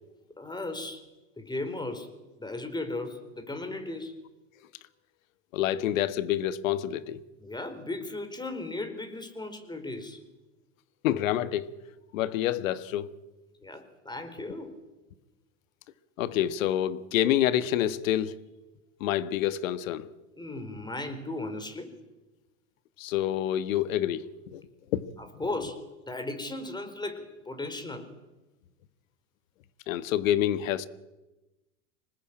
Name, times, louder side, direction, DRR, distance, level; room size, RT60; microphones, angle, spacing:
voice 1, 0.4-1.0 1.4-2.1 2.4-4.2 7.4-10.2 13.6-14.8 20.3-22.0 25.2-25.8 26.1-28.1, left 2 dB, 10° left, 4.5 m, -36 dB
voice 2, 5.5-7.2 11.0-11.7 12.1-13.1 16.2-18.3 19.0-20.1 23.0-24.6 24.9-25.0 29.9-30.9, left 12 dB, 70° left, 1.5 m, -27 dB
25.5 x 19.5 x 8.8 m
hypercardioid pair, 95°, 41 cm